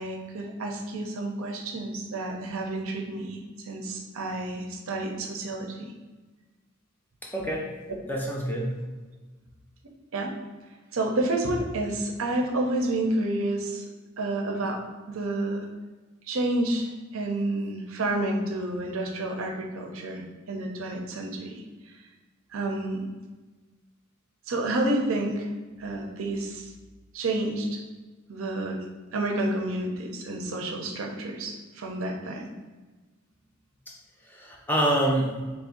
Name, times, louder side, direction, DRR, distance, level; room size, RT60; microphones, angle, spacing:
voice 1, 0.0-5.9 10.1-10.3 10.9-13.8 14.2-14.8 15.1-15.7 16.3-21.9 22.5-23.0 24.5-25.5 25.8-26.7 27.1-27.8 28.3-28.8 29.1-32.5, right 2 dB, 70° right, 1 dB, 0.6 m, -30 dB
voice 2, 7.2-7.7 8.1-8.7 34.3-35.3, right 1 dB, 10° left, -2 dB, 0.4 m, -26 dB
3.4 x 2.5 x 3.7 m, 1.3 s
head